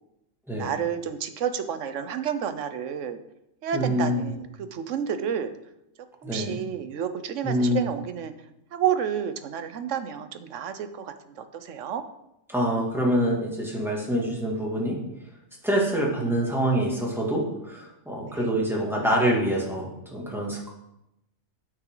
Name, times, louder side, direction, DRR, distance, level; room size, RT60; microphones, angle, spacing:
voice 1, 0.6-3.2 3.6-5.5 6.2-8.3 8.7-12.0 18.3-18.5, right 8 dB, 65° right, 10 dB, 1.1 m, -30 dB
voice 2, 3.7-4.3 6.2-6.6 7.4-7.9 12.5-15.0 15.6-20.7, equal, ahead, -3 dB, 2.3 m, -26 dB
9.2 x 8.8 x 3.9 m, 0.85 s
omnidirectional pair, 1.4 m